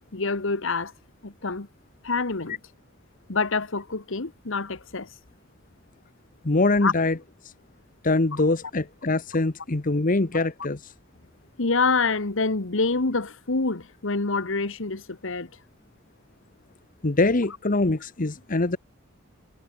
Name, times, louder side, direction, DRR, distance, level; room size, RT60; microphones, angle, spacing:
voice 1, 0.1-0.9 1.2-1.7 2.0-2.6 3.3-5.1 6.8-6.9 10.3-10.5 11.6-15.5, left 4 dB, 65° left, 1.4 m, -26 dB
voice 2, 6.4-7.2 8.0-10.9 17.0-18.8, left 2 dB, 40° left, 1.1 m, -23 dB
head